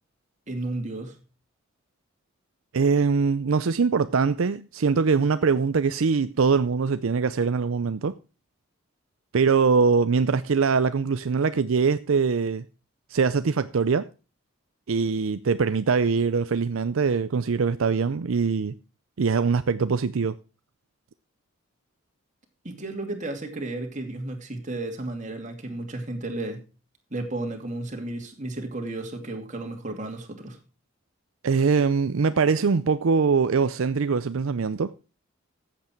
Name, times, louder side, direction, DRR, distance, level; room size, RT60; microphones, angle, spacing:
voice 1, 0.5-1.2 22.6-26.6 27.1-30.6, right 2 dB, 35° right, 2.6 m, -33 dB
voice 2, 2.7-8.1 9.3-12.7 13.1-14.1 14.9-18.8 19.2-20.4 31.4-34.9, right 5 dB, 70° right, 0.5 m, -22 dB
14.5 x 8.0 x 4.5 m
head